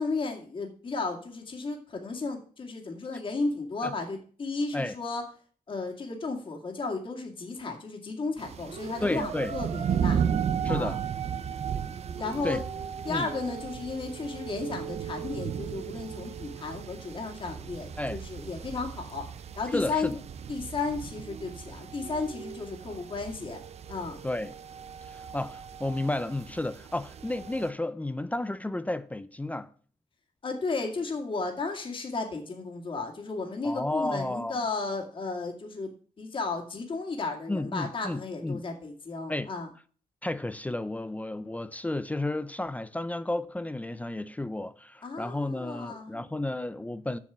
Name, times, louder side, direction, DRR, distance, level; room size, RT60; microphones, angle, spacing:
voice 1, 0.0-5.2 5.7-10.2 10.7-11.0 12.2-12.6 13.0-19.2 19.6-20.1 20.5-23.6 23.9-24.2 30.4-39.7 45.0-46.1, left 3 dB, 35° left, 2.4 m, -34 dB
sound 1, 8.4-27.7, right 8 dB, 50° right, 0.7 m, -35 dB
voice 2, 9.0-9.5 10.6-11.0 12.4-12.6 13.1-13.3 18.0-18.2 19.7-20.2 24.2-24.6 25.0-29.7 33.6-34.6 37.5-38.6 39.3-39.5 40.2-47.2, left 2 dB, 10° left, 0.5 m, -32 dB
7.4 x 7.0 x 7.3 m
cardioid pair, 120°, 14 cm